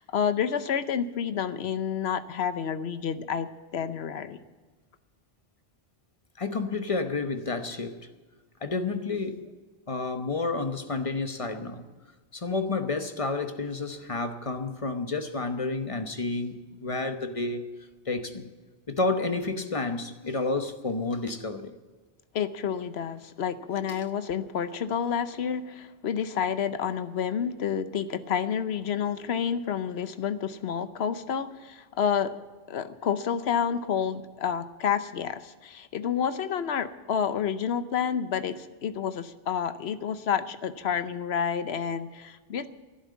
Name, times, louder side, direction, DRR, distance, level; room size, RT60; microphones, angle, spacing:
voice 1, 0.0-4.4 22.3-32.3 32.7-42.7, left 8 dB, 90° left, 1.0 m, -29 dB
voice 2, 6.4-8.1 8.6-9.4 9.9-11.8 12.3-17.6 18.1-18.5 18.9-21.7 23.8-24.1, left 3 dB, 35° left, 0.9 m, -30 dB
12.0 x 10.5 x 8.4 m
omnidirectional pair, 1.0 m